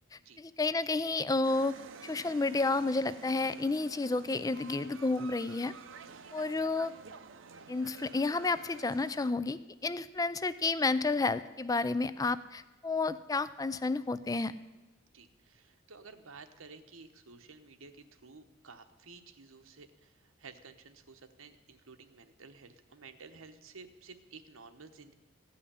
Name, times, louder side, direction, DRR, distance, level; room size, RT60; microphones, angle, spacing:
voice 1, 0.1-1.8 2.0-5.7 6.3-6.9 7.7-14.5, left 3 dB, 15° left, 15 dB, 0.3 m, -31 dB
sound 1, 1.4-9.3, right 5 dB, 65° right, 0.7 m, -50 dB
voice 2, 15.1-25.1, right 4 dB, 80° right, 7 dB, 1.0 m, -53 dB
15.5 x 5.7 x 9.9 m, 1.1 s
head